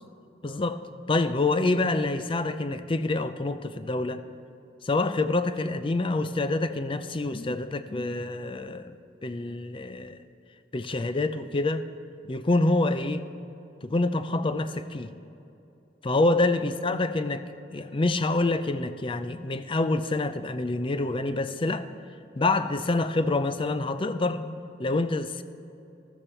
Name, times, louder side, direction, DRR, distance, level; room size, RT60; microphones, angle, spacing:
voice 1, 0.4-0.8 1.1-4.2 4.8-9.0 9.2-10.2 10.7-11.9 12.2-13.3 13.8-15.1 16.0-21.9 22.4-25.4, left 2 dB, 30° left, 11 dB, 0.5 m, -27 dB
13.5 x 13.5 x 4.4 m, 2.8 s
head